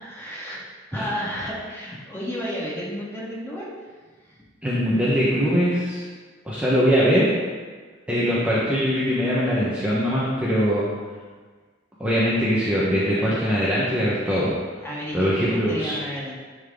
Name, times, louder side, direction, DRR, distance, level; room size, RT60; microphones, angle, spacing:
voice 1, 0.0-0.6 0.9-3.7 4.2-4.5 14.8-16.3, equal, 15° left, -6 dB, 1.7 m, -32 dB
voice 2, 4.6-6.1 6.4-7.3 8.1-10.9 12.0-14.5 15.1-16.0, equal, 5° right, -9 dB, 1.0 m, -22 dB
9.9 x 4.0 x 3.7 m, 1.4 s
head